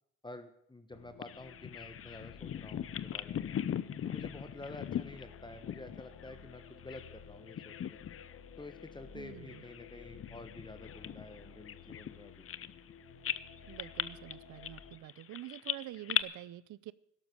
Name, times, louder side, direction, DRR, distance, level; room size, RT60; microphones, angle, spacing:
voice 1, 0.2-3.5 4.0-7.7 8.6-12.5, left 2 dB, 15° left, 9 dB, 1.3 m, -49 dB
sound 1, 0.9-15.0, left 6 dB, 60° left, 1.4 m, -54 dB
Bird vocalization bird call bird song, 1.2-7.2 7.5-8.4 8.7-8.9 9.5-12.9 13.2-16.2, left 9 dB, 45° left, 0.7 m, -39 dB
voice 2, 9.1-9.6 13.7-16.9, right 15 dB, 75° right, 19 dB, 0.6 m, -47 dB
12.0 x 12.0 x 6.5 m, 0.76 s
cardioid pair, 90°, 30 cm